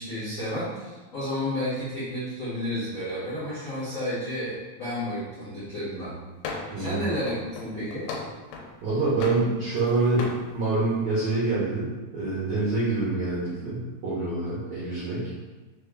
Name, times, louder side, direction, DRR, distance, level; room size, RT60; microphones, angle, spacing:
voice 1, 0.0-6.1 6.7-7.3 7.6-8.0, left 1 dB, 75° left, -13 dB, 0.9 m, -31 dB
sound 1, 6.4-6.9 7.3-8.8 9.2-9.9 10.2-10.4, left 4 dB, 90° left, 2.6 m, -36 dB
voice 2, 6.7-7.1 8.8-15.3, right 3 dB, 85° right, -8 dB, 1.5 m, -26 dB
5.9 x 2.2 x 3.4 m, 1.2 s
omnidirectional pair, 4.5 m